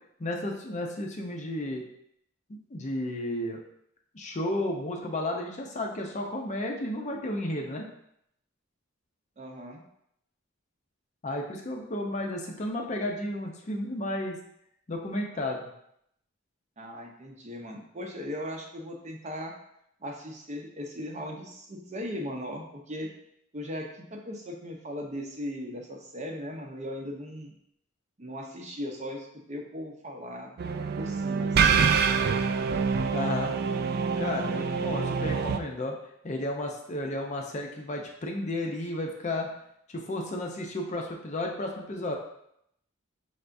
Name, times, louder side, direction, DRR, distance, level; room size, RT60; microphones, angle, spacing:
voice 1, 0.2-1.8 2.7-3.6 4.1-7.9 11.2-14.4 14.9-15.6 31.7-31.9 33.1-33.6 34.2-36.0 36.2-39.5 39.9-42.2, left 1 dB, 35° left, 1 dB, 0.6 m, -32 dB
voice 2, 9.4-9.8 16.8-19.5 20.0-23.1 23.5-27.5 28.2-30.6 31.0-31.9, equal, 35° right, 1 dB, 0.7 m, -38 dB
sound 1, 30.6-35.6, right 6 dB, 50° right, 0.3 m, -26 dB
5.6 x 3.3 x 2.6 m, 0.74 s
head